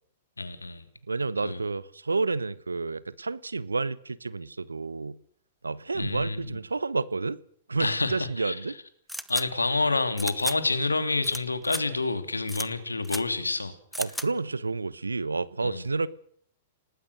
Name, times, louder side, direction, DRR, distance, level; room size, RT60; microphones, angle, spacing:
voice 1, 0.4-0.8 1.4-1.6 5.9-6.6 7.8-8.6 9.3-13.8 15.6-15.8, left 3 dB, 85° left, 9 dB, 2.7 m, -28 dB
voice 2, 1.1-5.2 5.6-7.4 7.7-8.8 14.0-16.1, right 3 dB, 80° right, 19 dB, 0.9 m, -30 dB
sound 1, 9.1-9.4 10.2-10.6 11.2-11.4 11.6-11.8 12.5-12.7 13.0-13.2 13.9-14.3, equal, ahead, 1.0 m, -34 dB
28.0 x 18.5 x 6.5 m, 0.63 s
figure-of-eight pair, 105°, 0 cm